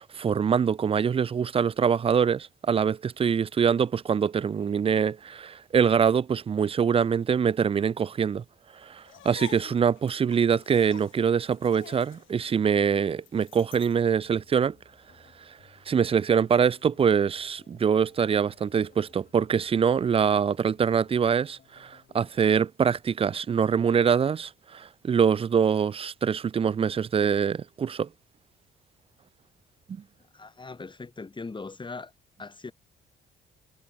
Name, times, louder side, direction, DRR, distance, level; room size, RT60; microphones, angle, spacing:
voice 1, 0.0-8.4 8.8-14.8 15.9-28.1, right 7 dB, 30° right, 0.4 m, -24 dB
sound 1, 9.0-14.0, left 14 dB, 80° left, 1.8 m, -48 dB
sound 2, 14.1-22.3, left 7 dB, 50° left, 4.9 m, -60 dB
voice 2, 30.3-32.1 32.4-32.7, left 3 dB, 25° left, 3.3 m, -39 dB
cardioid pair, 90°, 20 cm